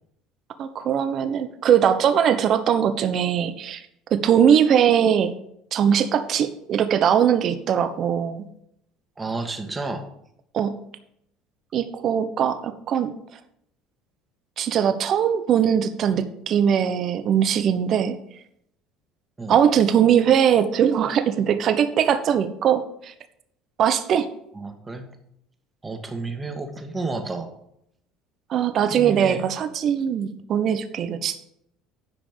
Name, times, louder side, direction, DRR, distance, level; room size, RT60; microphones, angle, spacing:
voice 1, 0.6-3.9 4.1-5.3 5.7-8.4 10.5-10.8 11.7-13.1 14.6-18.1 19.5-23.1 23.8-24.3 28.5-31.4, right 8 dB, 50° right, 10 dB, 1.0 m, -21 dB
voice 2, 9.2-10.1 19.4-19.6 24.5-25.1 25.8-27.5 28.9-29.4, right 3 dB, 20° right, 5 dB, 1.8 m, -31 dB
11.0 x 5.1 x 6.7 m, 0.74 s
supercardioid pair, 90°, 0 cm